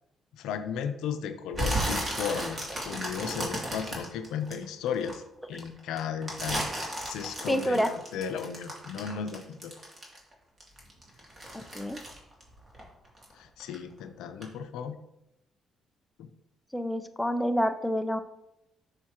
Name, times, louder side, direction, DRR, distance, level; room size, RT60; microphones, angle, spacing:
voice 1, 0.3-2.6 2.9-5.2 5.5-9.7 13.4-15.0 16.2-16.3, left 7 dB, 90° left, 8 dB, 0.6 m, -35 dB
sound 1, 1.5-5.1 5.6-10.3 10.6-13.3 13.6-14.0 14.4-14.5, right 1 dB, 30° right, 2.6 m, -34 dB
voice 2, 7.5-7.9 11.5-12.0 16.7-18.2, equal, 5° left, 7 dB, 0.6 m, -28 dB
11.0 x 6.4 x 2.9 m, 0.86 s
cardioid pair, 90°, 0 cm